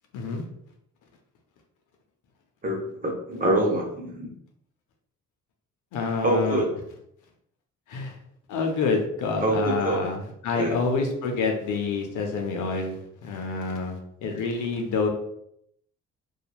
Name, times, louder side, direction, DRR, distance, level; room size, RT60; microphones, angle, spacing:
voice 1, 2.6-4.3 6.2-6.7 9.4-10.0 10.6-10.8, right 1 dB, 30° right, -1 dB, 0.7 m, -25 dB
voice 2, 5.9-6.6 7.9-8.1 8.5-15.1, left 4 dB, 80° left, 3 dB, 0.6 m, -27 dB
2.9 x 2.4 x 2.3 m, 0.74 s
cardioid pair, 90°, 30 cm